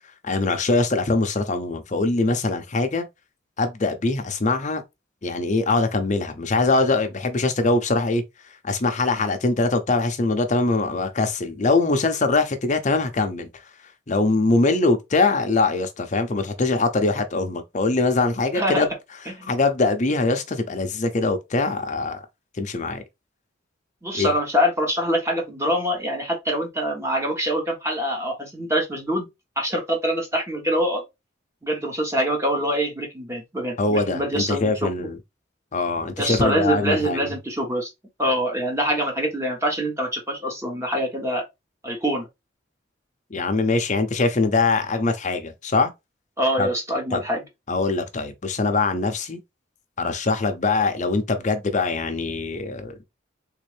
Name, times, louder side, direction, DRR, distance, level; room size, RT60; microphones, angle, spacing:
voice 1, 0.2-3.1 3.6-4.8 5.2-8.2 8.6-13.5 14.1-18.9 19.4-22.2 22.6-23.0 24.1-24.3 33.8-35.2 35.7-37.3 43.3-45.9 46.6-46.7 47.1-47.2 47.7-49.4 50.0-53.0, left 3 dB, 40° left, 0.6 m, -22 dB
voice 2, 18.5-18.9 19.3-19.5 24.0-29.3 29.6-31.0 31.6-35.1 36.2-37.9 38.2-41.4 41.8-42.3 46.4-47.4, equal, 15° right, 1.1 m, -24 dB
3.6 x 2.6 x 3.2 m
head